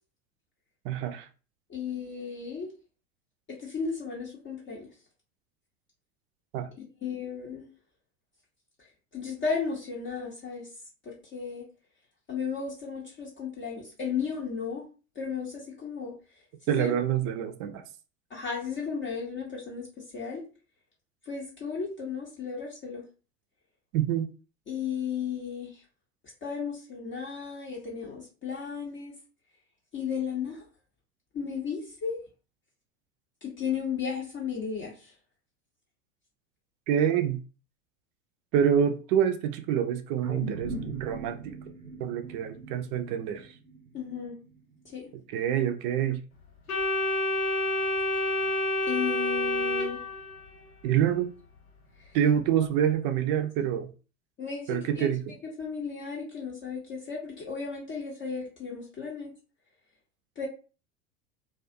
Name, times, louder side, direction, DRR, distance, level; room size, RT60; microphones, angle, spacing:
voice 1, 0.8-1.3 6.5-6.7 16.7-17.8 23.9-24.3 36.9-37.4 38.5-41.6 42.0-43.5 45.3-46.2 50.8-51.3 52.1-53.9 54.7-55.2, right 9 dB, 40° right, 0.5 m, -26 dB
voice 2, 1.7-2.7 3.5-4.9 7.0-7.7 9.1-10.7 11.1-11.7 12.3-14.8 15.2-16.1 16.7-16.9 18.3-19.9 20.1-20.4 21.3-23.0 24.7-25.8 26.4-29.1 29.9-30.6 31.3-32.2 33.4-35.1 43.9-44.3 44.8-45.1 48.3-48.4 48.9-50.0 52.0-52.1 54.4-55.1 55.6-59.3 60.4-60.5, left 6 dB, 25° left, 0.7 m, -34 dB
sound 1, 40.2-44.7 45.2-45.3, right 2 dB, 90° right, 0.6 m, -40 dB
Organ, 46.7-50.6, left 1 dB, 90° left, 0.8 m, -28 dB
2.3 x 2.3 x 2.5 m
figure-of-eight pair, 85°, 42 cm